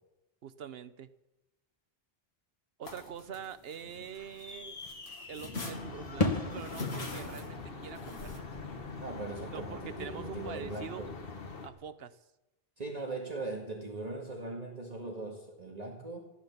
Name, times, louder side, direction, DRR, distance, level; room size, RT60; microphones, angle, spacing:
voice 1, 0.4-1.1 2.8-4.8 5.3-8.5 9.5-11.0 11.6-12.2, right 8 dB, 75° right, 13 dB, 1.0 m, -44 dB
sound 1, 2.8-4.5 4.8-8.4, left 3 dB, 85° left, 2.1 m, -42 dB
sound 2, 2.9-8.9, left 2 dB, 35° left, 1.4 m, -38 dB
sound 3, 5.7-11.7, left 4 dB, 65° left, 1.6 m, -44 dB
voice 2, 9.0-11.1 12.8-16.2, right 2 dB, 40° right, -1 dB, 1.9 m, -40 dB
15.5 x 11.0 x 7.1 m, 0.99 s
omnidirectional pair, 1.0 m